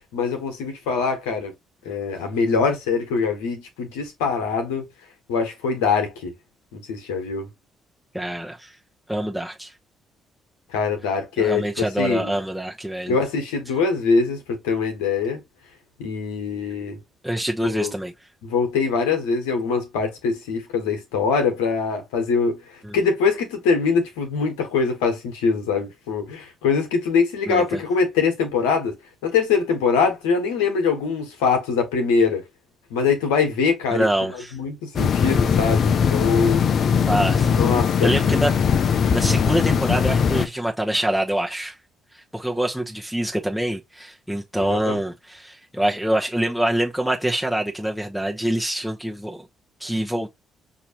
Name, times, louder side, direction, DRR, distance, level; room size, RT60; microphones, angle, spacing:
voice 1, 0.0-1.5 1.8-4.8 5.3-6.3 6.7-7.5 10.7-12.4 13.1-15.4 16.0-17.0 17.7-17.9 18.4-28.9 29.2-32.4 32.9-34.1 34.5-36.6 37.6-38.1 44.6-45.0, left 5 dB, 75° left, 1.4 m, -23 dB
voice 2, 8.1-8.7 9.1-9.7 11.4-13.2 17.2-18.1 22.8-23.0 27.5-27.8 33.9-34.6 37.1-41.8 42.1-49.4 49.8-50.3, right 1 dB, ahead, 0.9 m, -25 dB
sound 1, 35.0-40.5, left 6 dB, 55° left, 0.5 m, -20 dB
6.1 x 2.9 x 2.9 m
hypercardioid pair, 45°, 0 cm